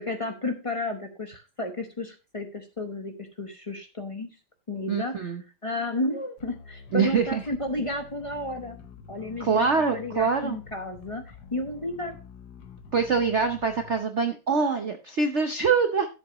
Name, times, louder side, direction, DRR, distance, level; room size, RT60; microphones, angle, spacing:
voice 1, 0.0-4.3 4.7-5.4 5.6-8.8 9.1-12.2, left 2 dB, 40° left, 5 dB, 0.4 m, -32 dB
voice 2, 4.9-5.4 6.9-7.4 9.4-10.6 12.9-16.1, right 5 dB, 60° right, 6 dB, 0.7 m, -24 dB
sound 1, 6.4-14.0, left 6 dB, 55° left, 1.6 m, -47 dB
12.5 x 7.7 x 3.0 m, 0.30 s
omnidirectional pair, 2.3 m